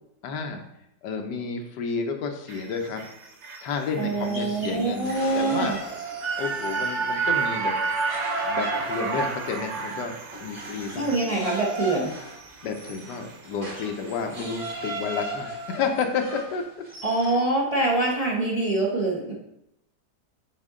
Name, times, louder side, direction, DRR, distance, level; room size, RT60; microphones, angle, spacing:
voice 1, 0.2-0.6 1.0-3.1 3.6-5.8 6.4-7.8 8.4-11.2 12.6-16.6, left 5 dB, 85° left, 5 dB, 1.4 m, -31 dB
sound 1, 2.5-14.8 15.2-15.3, right 4 dB, 55° right, 0.8 m, -32 dB
voice 2, 4.0-5.8 11.0-12.1 17.0-19.3, right 2 dB, 30° right, -4 dB, 0.8 m, -25 dB
sound 2, 4.2-6.9 7.2-17.5, right 1 dB, 80° right, 2.9 m, -36 dB
6.3 x 4.4 x 3.7 m, 0.81 s
omnidirectional pair, 1.8 m